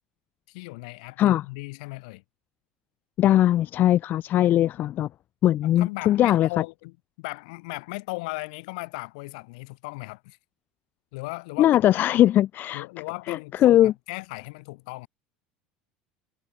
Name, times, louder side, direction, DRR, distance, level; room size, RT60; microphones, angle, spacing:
voice 1, 0.5-2.2 3.2-3.4 5.6-10.4 11.1-12.2 12.7-15.1, left 26 dB, 70° left, 2.1 m, -37 dB
voice 2, 3.2-5.1 5.4-6.5 11.6-12.8 13.3-13.9, left 12 dB, 50° left, 0.5 m, -20 dB
hypercardioid pair, 80°, 4 cm